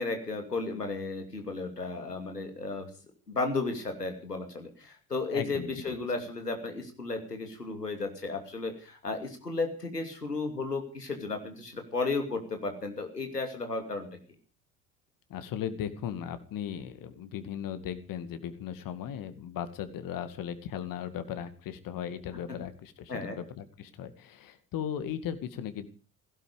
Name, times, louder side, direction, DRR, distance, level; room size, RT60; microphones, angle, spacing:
voice 1, 0.0-2.9 3.3-14.1 23.1-23.4, left 3 dB, 90° left, 5 dB, 2.8 m, -34 dB
voice 2, 5.3-6.0 15.3-25.9, left 9 dB, 45° left, 11 dB, 2.3 m, -37 dB
17.0 x 16.5 x 5.1 m, 0.38 s
figure-of-eight pair, 65°, 46 cm